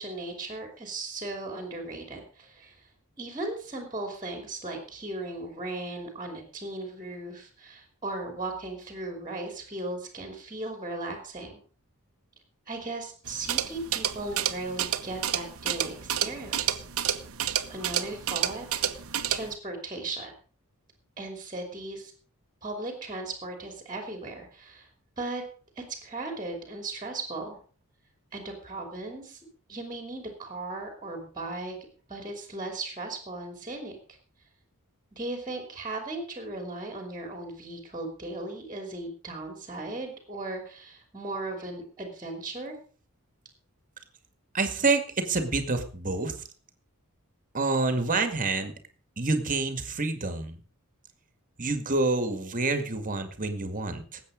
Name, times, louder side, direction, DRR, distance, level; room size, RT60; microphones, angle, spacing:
voice 1, 0.0-2.9 3.2-11.6 12.7-16.8 17.7-18.7 19.3-20.3 21.2-22.1 22.6-24.9 25.2-25.4 25.8-27.6 28.3-29.4 29.7-31.8 32.1-34.0 35.1-42.8, right 2 dB, 20° right, 4 dB, 3.0 m, -37 dB
sound 1, 13.3-19.5, right 10 dB, 70° right, 1.1 m, -30 dB
voice 2, 44.5-46.4 47.5-48.7 49.2-50.6 51.6-54.2, right 3 dB, 35° right, 8 dB, 2.0 m, -27 dB
19.0 x 8.4 x 5.1 m, 0.42 s
head